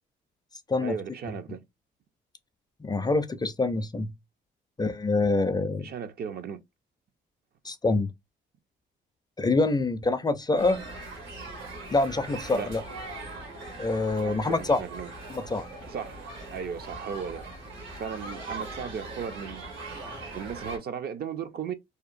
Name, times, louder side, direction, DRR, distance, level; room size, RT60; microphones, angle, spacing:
voice 1, 0.8-1.6 5.8-6.6 12.5-12.7 14.2-15.1 15.9-17.5 18.0-19.6 20.3-21.7, right 7 dB, 55° right, 0.5 m, -36 dB
voice 2, 2.8-4.1 4.8-5.9 7.6-8.1 9.4-10.8 11.9-12.8 13.8-14.8 15.3-15.6, left 3 dB, 20° left, 0.4 m, -25 dB
sound 1, 10.6-20.8, right 2 dB, 75° right, 1.2 m, -40 dB
2.8 x 2.1 x 2.5 m
cardioid pair, 90°, 20 cm